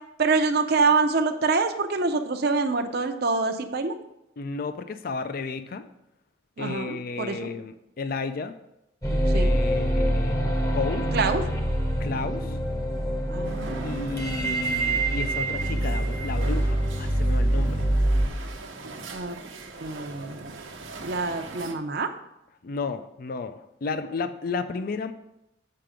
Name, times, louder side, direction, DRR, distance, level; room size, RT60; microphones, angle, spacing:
voice 1, 0.2-3.9 6.6-7.5 9.3-9.6 11.1-11.4 13.3-14.6 19.1-19.4 19.8-20.5 21.0-22.1, right 4 dB, 55° right, 6 dB, 0.6 m, -26 dB
voice 2, 4.4-5.8 6.6-8.5 9.3-11.1 12.0-12.6 13.8-17.8 22.6-25.1, left 4 dB, 45° left, 10 dB, 0.4 m, -33 dB
sound 1, 9.0-18.3, right 1 dB, 15° left, 0.8 m, -25 dB
sound 2, 13.4-21.7, right 3 dB, 85° right, 1.0 m, -41 dB
7.7 x 5.7 x 5.0 m, 0.88 s
head